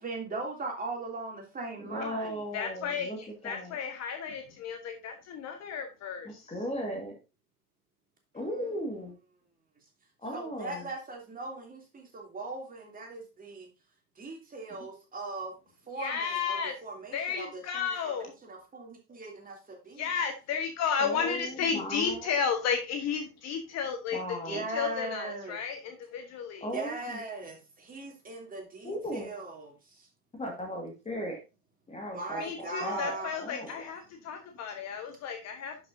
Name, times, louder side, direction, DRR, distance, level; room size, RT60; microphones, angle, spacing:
voice 1, 0.0-2.4 8.4-8.5 10.3-13.7 14.2-15.5 15.9-20.1 24.5-25.6 26.7-30.1 32.1-33.7, right 3 dB, 20° right, 1 dB, 2.9 m, -39 dB
voice 2, 1.8-3.8 6.2-7.1 8.3-9.2 10.2-10.9 21.0-22.3 24.1-24.6 26.6-27.2 28.8-29.3 30.3-31.4 31.9-33.8, equal, 15° left, 2 dB, 1.8 m, -37 dB
voice 3, 2.5-3.1 3.4-6.5 16.0-16.7 17.1-18.3 20.0-24.2 24.5-26.6 32.4-35.8, left 6 dB, 35° left, 5 dB, 1.2 m, -33 dB
11.5 x 5.7 x 2.6 m, 0.27 s
figure-of-eight pair, 85°, 45 cm